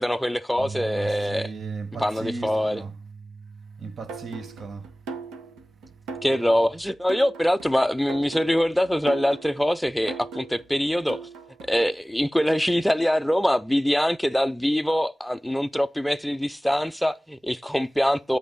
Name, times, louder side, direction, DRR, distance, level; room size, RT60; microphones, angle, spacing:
voice 1, 0.0-1.5 1.9-2.9 6.2-11.3 11.7-18.4, equal, ahead, 0.4 m, -24 dB
Bass guitar, 0.6-6.8, right 5 dB, 70° right, 1.4 m, -41 dB
voice 2, 0.9-2.9 3.8-4.8, right 4 dB, 45° right, 0.8 m, -37 dB
sound 1, 4.1-11.9, right 4 dB, 90° right, 1.3 m, -40 dB
8.4 x 4.0 x 5.2 m
cardioid pair, 90°, 0 cm